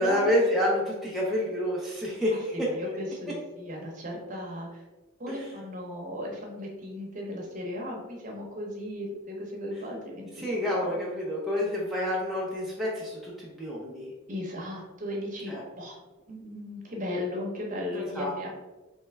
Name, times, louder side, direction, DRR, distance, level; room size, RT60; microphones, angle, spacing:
voice 1, 0.0-2.7 5.3-5.5 10.4-14.1 15.5-15.6 17.9-18.3, left 1 dB, ahead, -6 dB, 0.5 m, -28 dB
voice 2, 2.5-4.7 5.2-10.5 10.7-11.0 14.3-16.0 16.3-18.5, left 1 dB, 40° right, -1 dB, 0.8 m, -36 dB
3.4 x 3.1 x 3.3 m, 1.2 s
head